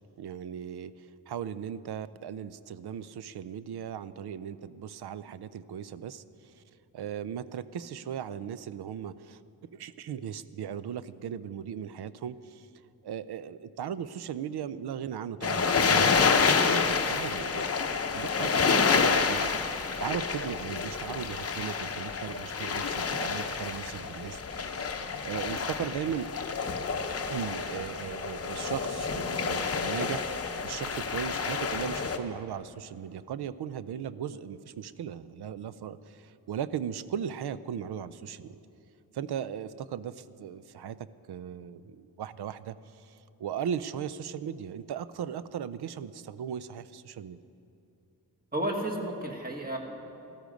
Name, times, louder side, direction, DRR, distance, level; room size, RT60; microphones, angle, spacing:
voice 1, 0.2-6.6 6.9-12.7 13.0-17.7 18.1-26.3 27.3-30.3 30.6-38.6 39.1-47.4, right 8 dB, 75° right, 16 dB, 0.5 m, -37 dB
sound 1, 15.4-32.2, left 5 dB, 35° left, 0.7 m, -28 dB
voice 2, 48.5-49.8, right 1 dB, 25° right, 1 dB, 1.5 m, -32 dB
14.5 x 13.0 x 5.2 m, 2.7 s
wide cardioid pair, 160°, 40 cm